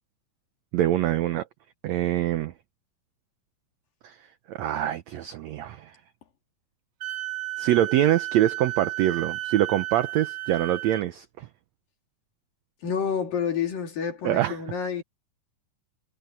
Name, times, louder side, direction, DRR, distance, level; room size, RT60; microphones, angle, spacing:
voice 1, 0.7-1.4 1.8-2.5 4.0-4.2 4.5-5.9 7.6-11.5 14.2-14.6, right 13 dB, 80° right, 1.5 m, -24 dB
Wind instrument woodwind instrument, 7.0-11.1, right 17 dB, 65° right, 2.2 m, -33 dB
voice 2, 12.8-15.0, left 7 dB, 75° left, 5.2 m, -28 dB
omnidirectional pair, 4.0 m